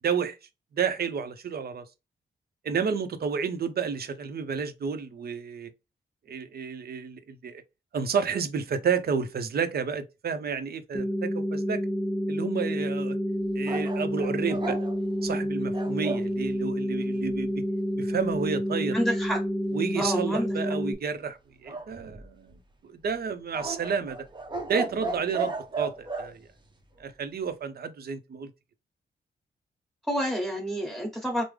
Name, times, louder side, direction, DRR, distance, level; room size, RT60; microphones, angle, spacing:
voice 1, 0.0-0.4 0.7-1.9 2.6-5.7 6.3-7.6 7.9-11.8 12.3-13.2 13.5-14.8 15.2-17.6 17.9-18.9 19.7-24.2 24.7-26.4 27.0-28.5, right 6 dB, 60° right, 0.6 m, -31 dB
sound 1, 10.9-20.9, equal, 15° left, 0.4 m, -29 dB
sound 2, 13.6-16.3 21.6-22.5 23.5-26.3, right 3 dB, 25° right, 0.8 m, -34 dB
voice 2, 18.9-19.4 20.0-20.5 30.1-31.4, equal, ahead, 1.3 m, -28 dB
3.4 x 2.0 x 3.2 m
cardioid pair, 70°, 18 cm